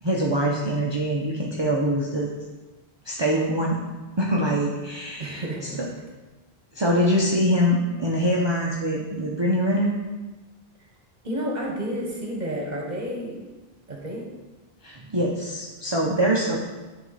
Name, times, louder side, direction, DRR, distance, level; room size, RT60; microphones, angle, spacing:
voice 1, 0.0-2.3 3.0-3.8 4.2-5.9 6.7-9.9 14.8-16.6, equal, 30° right, -3 dB, 0.7 m, -24 dB
voice 2, 5.2-5.8 11.2-13.4 13.9-14.3, equal, 45° right, -1 dB, 1.5 m, -30 dB
10.5 x 3.7 x 4.1 m, 1.2 s
omnidirectional pair, 1.0 m